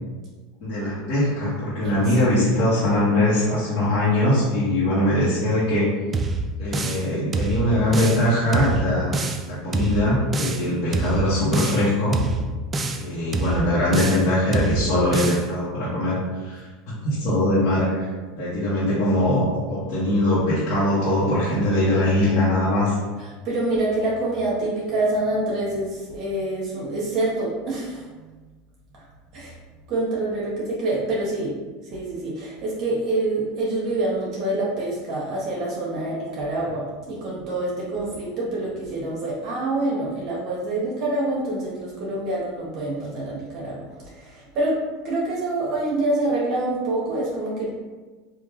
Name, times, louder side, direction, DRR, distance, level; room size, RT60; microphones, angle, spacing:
voice 1, 0.6-5.9 6.6-12.2 12.9-18.1 18.4-22.9, left 1 dB, 60° left, -11 dB, 1.4 m, -22 dB
voice 2, 1.8-2.2 21.6-21.9 23.2-28.1 28.9-29.0 29.3-29.6 29.9-31.5 31.9-43.8 44.1-44.8 45.0-47.7, right 2 dB, 45° right, -5 dB, 1.2 m, -26 dB
sound 1, 6.1-7.1 7.3-8.3 8.5-9.5 9.7-10.7 10.9-11.9 12.1-13.1 13.3-14.3 14.5-15.5, right 3 dB, 25° right, 0.3 m, -26 dB
3.6 x 2.7 x 2.9 m, 1.3 s
supercardioid pair, 115°, 0 cm